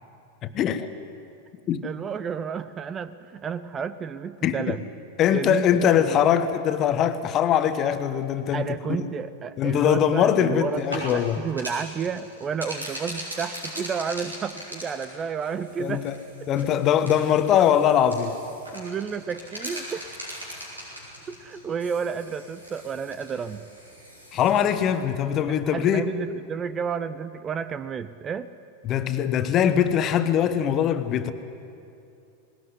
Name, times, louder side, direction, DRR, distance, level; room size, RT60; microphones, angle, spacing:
voice 1, 0.4-0.9 1.7-1.8 4.4-4.8 5.2-9.1 9.6-11.4 15.8-16.2 16.5-18.4 24.3-26.1 28.8-31.3, left 9 dB, 35° left, 10 dB, 1.4 m, -22 dB
voice 2, 1.8-4.8 5.3-6.2 8.5-16.1 18.7-20.2 21.3-23.7 25.4-28.5, right 6 dB, 25° right, 14 dB, 0.7 m, -31 dB
sound 1, 10.7-24.8, equal, 85° right, 6.5 m, -40 dB
20.0 x 19.5 x 9.8 m, 2.7 s
figure-of-eight pair, 90°, 0 cm